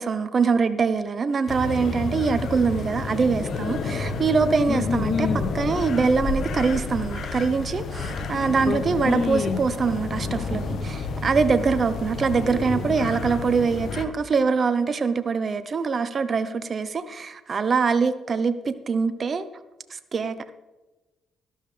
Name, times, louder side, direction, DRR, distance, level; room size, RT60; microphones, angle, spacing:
voice 1, 0.0-5.3 5.5-19.5 19.9-20.5, right 5 dB, 40° right, 11 dB, 0.8 m, -24 dB
sound 1, 1.5-14.0, left 3 dB, 65° left, 1.3 m, -30 dB
voice 2, 4.7-5.5 8.7-9.6, left 6 dB, 50° left, 11 dB, 0.8 m, -27 dB
12.5 x 12.0 x 3.4 m, 1.1 s
cardioid pair, 90°, 0 cm